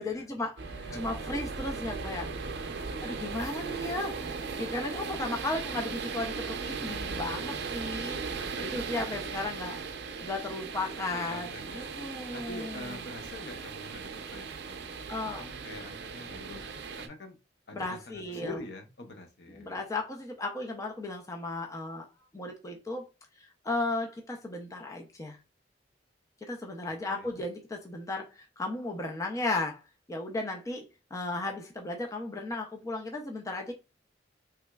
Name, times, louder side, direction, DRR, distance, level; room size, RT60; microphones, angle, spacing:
voice 1, 0.0-2.3 3.0-8.3 8.6-9.8 10.2-13.0 15.1-15.5 17.7-18.6 19.5-22.1 22.3-23.1 23.4-25.4 26.4-29.8 30.1-33.7, left 2 dB, 15° left, 0.4 m, -35 dB
sound 1, 0.6-17.1, right 5 dB, 60° right, 0.5 m, -37 dB
voice 2, 0.8-1.1 2.8-2.9 8.2-8.5 9.6-9.9 10.2-10.3 10.9-11.9 12.3-15.0 15.4-17.4 17.7-19.8 27.0-27.3, left 2 dB, 60° left, 0.7 m, -46 dB
3.4 x 3.0 x 2.2 m
head